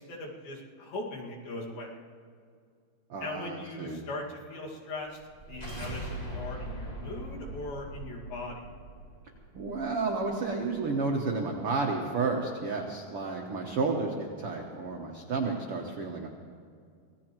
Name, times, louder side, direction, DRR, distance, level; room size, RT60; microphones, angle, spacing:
voice 1, 0.0-2.0 3.2-5.2 5.5-8.6, left 2 dB, 70° left, -3 dB, 3.8 m, -39 dB
voice 2, 3.1-4.0 9.5-16.3, right 4 dB, 75° right, 0 dB, 1.3 m, -31 dB
sound 1, 5.2-10.3, right 1 dB, 10° left, 2.2 m, -41 dB
26.0 x 18.0 x 3.0 m, 2.2 s
omnidirectional pair, 4.4 m